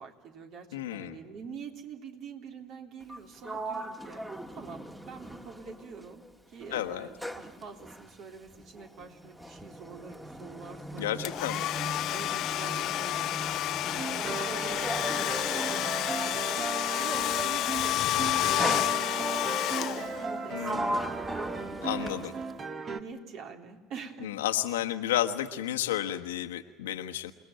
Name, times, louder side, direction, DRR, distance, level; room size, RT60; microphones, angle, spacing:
voice 1, 0.0-4.2 4.5-11.3 12.1-13.5 13.9-21.2 22.0-22.5 22.9-24.3, right 5 dB, 55° right, 4 dB, 3.6 m, -45 dB
voice 2, 0.7-1.2 6.7-7.1 11.0-11.7 20.5-21.0 21.8-22.3 24.2-27.3, left 12 dB, 75° left, 6 dB, 1.3 m, -32 dB
Sliding door, 3.0-6.3 6.6-16.8 17.7-18.0 18.6-19.5 20.1-22.6, right 1 dB, 5° right, 2.1 m, -39 dB
Domestic sounds home sounds, 11.2-20.4, left 14 dB, 55° left, 0.8 m, -30 dB
sound 1, 13.9-23.0, right 4 dB, 35° right, 1.9 m, -36 dB
28.5 x 19.5 x 8.9 m, 1.2 s
hypercardioid pair, 70°, 0 cm